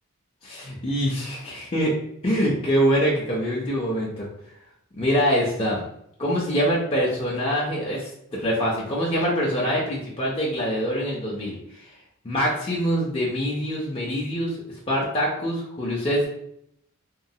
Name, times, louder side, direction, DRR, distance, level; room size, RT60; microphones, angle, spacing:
voice 1, 0.4-1.9 2.2-4.3 5.0-5.8 6.2-11.6 12.2-14.6 14.9-16.3, equal, 30° left, -5 dB, 0.6 m, -24 dB
3.0 x 2.1 x 2.7 m, 0.73 s
head